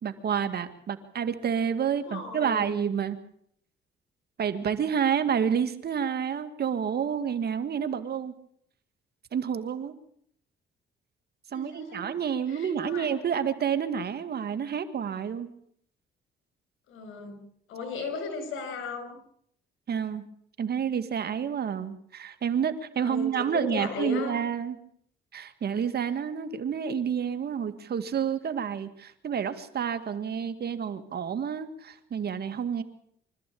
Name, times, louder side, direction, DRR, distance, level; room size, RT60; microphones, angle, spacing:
voice 1, 0.0-3.2 4.4-8.3 9.3-10.0 11.5-15.5 19.9-20.3 20.6-24.8 25.3-32.8, right 7 dB, 55° right, 10 dB, 2.2 m, -29 dB
voice 2, 1.9-2.6 11.5-12.1 12.5-13.1 16.9-17.4 17.7-19.2 23.0-24.3, left 4 dB, 85° left, 8 dB, 6.2 m, -36 dB
25.5 x 14.0 x 8.7 m, 0.67 s
cardioid pair, 90°, 20 cm